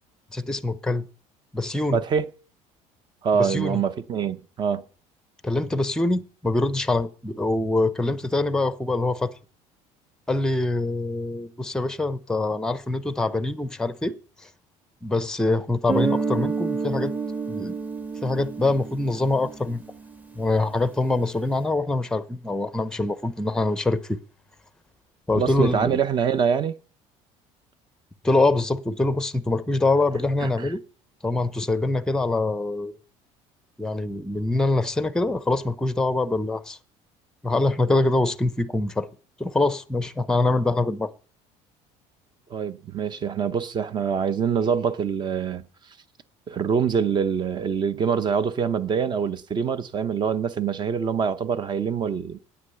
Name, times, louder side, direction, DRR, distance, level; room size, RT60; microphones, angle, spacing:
voice 1, 0.3-1.1 1.5-2.0 3.3-3.8 5.4-9.3 10.3-14.1 15.0-17.1 17.5-17.8 18.2-19.8 20.4-24.2 25.3-26.0 28.2-30.8 31.2-32.9 33.8-36.8 37.4-39.1 39.4-41.1, left 2 dB, 5° left, 0.7 m, -24 dB
voice 2, 1.9-2.3 3.2-4.8 25.3-26.8 30.4-30.7 42.5-45.6 46.5-52.4, right 7 dB, 35° right, 0.8 m, -25 dB
Guitar, 15.9-20.5, right 5 dB, 10° right, 1.1 m, -29 dB
9.7 x 8.6 x 6.9 m
cardioid pair, 135°, 14 cm